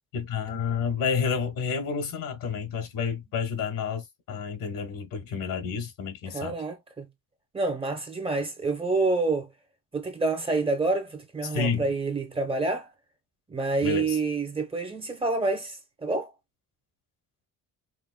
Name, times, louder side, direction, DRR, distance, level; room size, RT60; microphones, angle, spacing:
voice 1, 0.1-6.5 11.4-11.9 13.8-14.2, left 6 dB, 80° left, 1.5 m, -30 dB
voice 2, 6.3-7.1 7.5-9.5 9.9-12.9 13.5-16.3, right 3 dB, 15° right, 0.8 m, -28 dB
5.2 x 2.1 x 2.2 m
cardioid pair, 130°, 32 cm